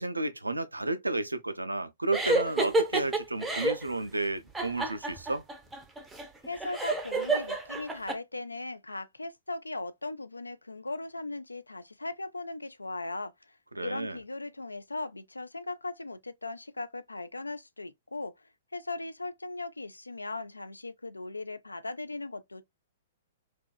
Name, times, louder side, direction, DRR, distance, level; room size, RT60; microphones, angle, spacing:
voice 1, 0.0-5.4 13.7-14.2, right 2 dB, 85° right, 0.4 m, -32 dB
sound 1, 2.1-3.9 4.5-8.2, right 2 dB, 10° right, 0.5 m, -29 dB
voice 2, 6.4-13.3 13.8-18.3 18.7-22.6, left 2 dB, 85° left, 0.3 m, -38 dB
2.6 x 2.3 x 2.2 m
figure-of-eight pair, 115°, 0 cm